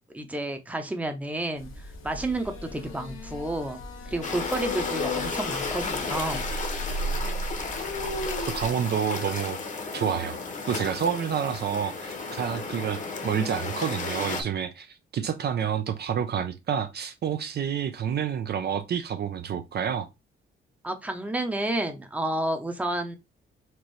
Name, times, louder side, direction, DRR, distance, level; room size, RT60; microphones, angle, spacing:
voice 1, 0.1-1.7 2.0-3.8 4.1-6.4 6.9-7.0 20.8-23.2, right 1 dB, 5° right, 0.7 m, -30 dB
sound 1, 1.6-8.7, equal, 85° left, 0.9 m, -35 dB
sound 2, 4.2-14.4, left 4 dB, 40° left, 0.9 m, -33 dB
voice 2, 8.4-9.6 9.9-10.4 10.7-20.1, right 8 dB, 50° right, 0.5 m, -29 dB
4.4 x 2.5 x 3.1 m
cardioid pair, 105°, 21 cm